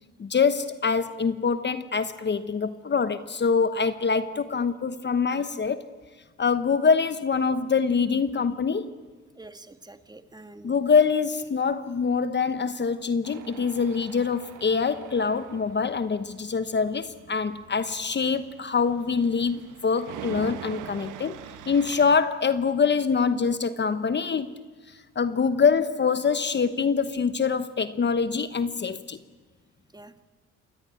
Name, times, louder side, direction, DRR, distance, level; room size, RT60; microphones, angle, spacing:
voice 1, 0.2-5.9 6.4-8.9 10.6-24.5 25.1-29.2, left 5 dB, 35° left, 12 dB, 1.1 m, -24 dB
voice 2, 9.4-10.8 29.9-30.2, right 2 dB, 15° right, 9 dB, 1.8 m, -47 dB
Tools, 13.2-22.2, right 10 dB, 85° right, 1.4 m, -44 dB
28.0 x 22.0 x 9.2 m, 1.4 s
cardioid pair, 90°, 30 cm